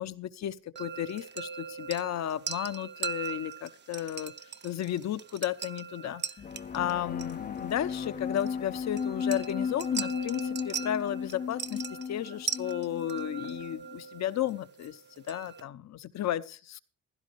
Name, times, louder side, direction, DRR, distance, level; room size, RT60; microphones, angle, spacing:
voice 1, 0.0-4.3 4.6-6.2 6.7-15.0 15.3-16.8, left 11 dB, 60° left, 0.9 m, -33 dB
sound 1, 0.8-15.6, right 6 dB, 35° right, 0.7 m, -40 dB
sound 2, 6.4-13.9, left 6 dB, 30° left, 0.5 m, -35 dB
16.0 x 12.0 x 3.1 m
cardioid pair, 90°, 30 cm